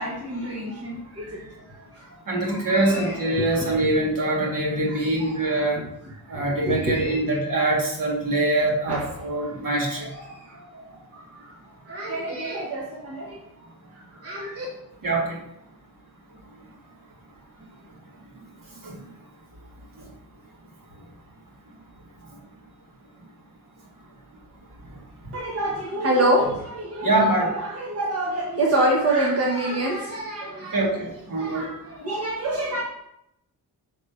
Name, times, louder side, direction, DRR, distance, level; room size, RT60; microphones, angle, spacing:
voice 1, 0.0-3.7 4.9-5.6 6.3-7.2 8.9-9.1 9.7-11.5 11.9-13.4 14.1-14.6 25.3-27.1 27.6-30.8 31.4-32.8, right 1 dB, 40° right, -3 dB, 1.3 m, -27 dB
voice 2, 2.3-5.8 6.3-10.1 15.0-15.4 18.8-19.0 27.0-27.5 30.7-31.7, right 2 dB, 60° right, -3 dB, 2.2 m, -24 dB
6.5 x 4.1 x 5.0 m, 0.81 s
wide cardioid pair, 145°, 36 cm